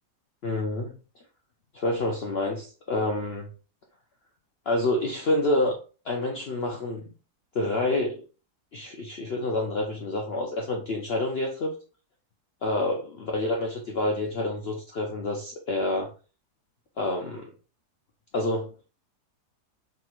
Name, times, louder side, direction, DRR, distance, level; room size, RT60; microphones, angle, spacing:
voice 1, 0.4-0.9 1.7-3.5 4.7-5.7 6.0-7.1 7.5-8.2 8.7-11.7 12.6-16.1 17.0-17.5 18.3-18.7, left 2 dB, 65° left, 1 dB, 0.6 m, -28 dB
4.3 x 3.7 x 2.4 m, 0.36 s
omnidirectional pair, 1.8 m